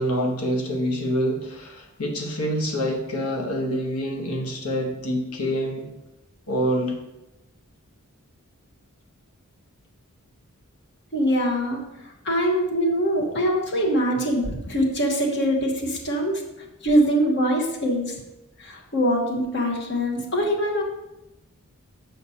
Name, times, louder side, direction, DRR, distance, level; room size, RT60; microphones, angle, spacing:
voice 1, 0.0-5.8 6.5-6.9, equal, 85° left, 1 dB, 1.2 m, -26 dB
voice 2, 11.1-11.8 12.2-16.4 16.8-18.1 18.6-20.8, equal, 55° left, 0 dB, 1.2 m, -23 dB
6.6 x 6.0 x 2.8 m, 0.93 s
head